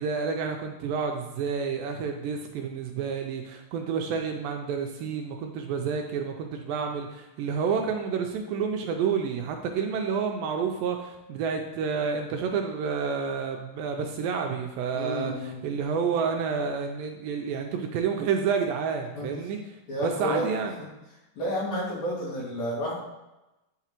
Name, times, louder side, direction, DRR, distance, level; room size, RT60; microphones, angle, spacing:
voice 1, 0.0-19.6 20.0-20.8, right 6 dB, 80° right, 3 dB, 2.1 m, -29 dB
voice 2, 14.9-15.6 19.2-19.3 19.9-20.5 21.4-22.9, equal, 55° left, -7 dB, 3.3 m, -30 dB
8.5 x 5.8 x 2.9 m, 0.99 s
omnidirectional pair, 4.3 m